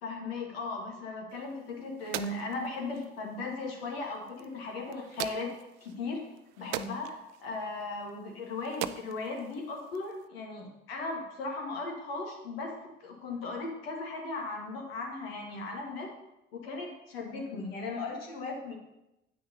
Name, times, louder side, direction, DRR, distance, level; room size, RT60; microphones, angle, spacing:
voice 1, 0.0-6.2 6.6-16.1 16.5-18.7, left 3 dB, 80° left, 0 dB, 1.6 m, -37 dB
sound 1, 1.3-10.3, right 13 dB, 65° right, 0.5 m, -43 dB
9.3 x 9.0 x 2.7 m, 0.91 s
hypercardioid pair, 50°, 29 cm